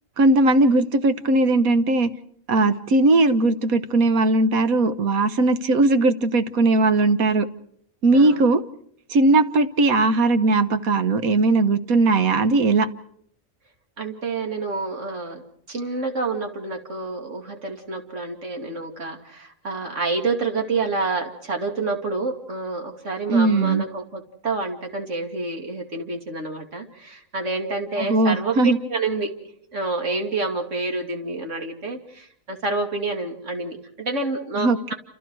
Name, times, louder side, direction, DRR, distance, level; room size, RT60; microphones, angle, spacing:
voice 1, 0.2-2.1 2.5-7.5 8.0-8.6 9.1-12.9 23.3-23.8 28.0-28.8 34.6-34.9, right 2 dB, 85° right, 11 dB, 1.6 m, -19 dB
voice 2, 8.1-8.5 14.0-15.4 15.7-29.3 29.7-34.9, right 3 dB, 60° right, 3 dB, 2.8 m, -28 dB
28.0 x 27.5 x 4.7 m, 0.68 s
omnidirectional pair, 1.4 m